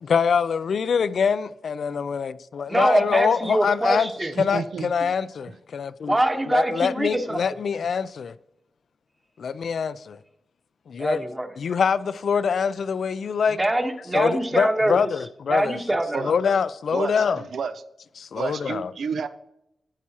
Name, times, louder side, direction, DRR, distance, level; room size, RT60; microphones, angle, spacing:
voice 1, 0.0-4.1 4.4-6.2 6.5-8.3 9.4-10.2 10.9-11.2 11.6-13.6 14.1-15.8 16.2-17.4 18.2-18.9, left 6 dB, 75° left, 0.4 m, -24 dB
voice 2, 2.7-4.3 6.0-7.4 11.0-11.5 13.5-15.0 15.5-16.3, right 1 dB, 15° right, 1.1 m, -23 dB
voice 3, 4.2-5.1 16.1-16.3 16.9-17.2 17.5-17.7 18.3-19.3, right 6 dB, 85° right, 0.5 m, -30 dB
12.0 x 8.3 x 2.9 m
wide cardioid pair, 110°, 0 cm